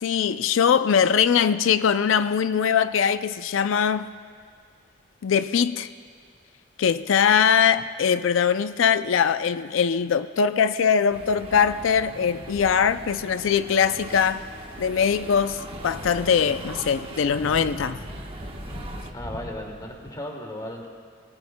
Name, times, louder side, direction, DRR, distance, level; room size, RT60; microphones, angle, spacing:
voice 1, 0.0-4.1 5.2-5.9 6.8-14.4 14.8-18.0, left 7 dB, 75° left, 12 dB, 0.4 m, -22 dB
sound 1, 11.1-19.1, right 1 dB, 30° right, 1.1 m, -40 dB
sound 2, 15.7-20.1, equal, 45° left, 2.4 m, -40 dB
voice 2, 19.1-20.9, left 1 dB, 20° left, 0 dB, 2.1 m, -35 dB
27.5 x 18.5 x 2.2 m, 2.1 s
head